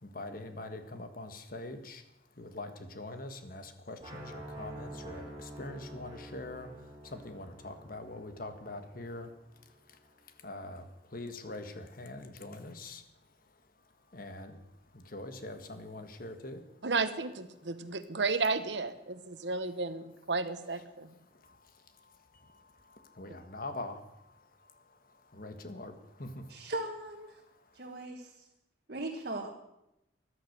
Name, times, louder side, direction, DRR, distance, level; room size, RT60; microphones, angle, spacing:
voice 1, 0.0-2.0 2.4-6.7 7.0-9.3 9.9-10.0 10.4-13.0 14.1-14.6 14.9-16.6 20.7-20.9 21.4-26.9 27.8-27.9, left 2 dB, 55° left, 8 dB, 1.5 m, -44 dB
sound 1, 4.0-9.9, right 1 dB, 25° right, 2.8 m, -48 dB
voice 2, 16.8-21.1, right 4 dB, 85° right, 11 dB, 1.0 m, -33 dB
voice 3, 26.5-27.4 27.7-28.5 28.9-29.5, right 1 dB, 60° right, 1 dB, 1.5 m, -39 dB
14.5 x 11.5 x 6.7 m, 0.87 s
head